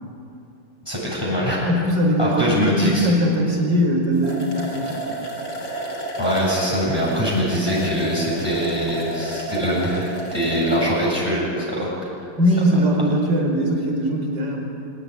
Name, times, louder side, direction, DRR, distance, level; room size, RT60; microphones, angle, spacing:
voice 1, 0.9-1.6 2.2-3.1 6.2-11.9, equal, 10° left, -6 dB, 7.8 m, -22 dB
voice 2, 1.6-2.5 2.8-5.1 12.4-14.6, equal, 65° right, 1 dB, 5.3 m, -20 dB
sound 1, 3.8-3.9 4.1-11.2, right 1 dB, 75° left, 4.0 m, -31 dB
24.0 x 19.5 x 10.0 m, 2.7 s
omnidirectional pair, 2.1 m